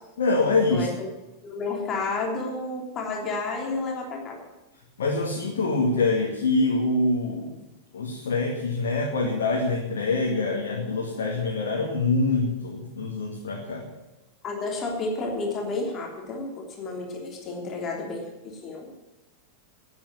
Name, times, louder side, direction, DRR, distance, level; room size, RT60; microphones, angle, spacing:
voice 1, 0.2-0.9 5.0-7.6 7.9-13.9, left 3 dB, 60° left, -1 dB, 2.2 m, -25 dB
voice 2, 0.7-1.1 1.4-4.4 14.4-18.2 18.6-18.9, left 3 dB, 30° left, 1 dB, 3.2 m, -31 dB
12.5 x 8.8 x 9.6 m, 1.0 s
figure-of-eight pair, 90°, 0 cm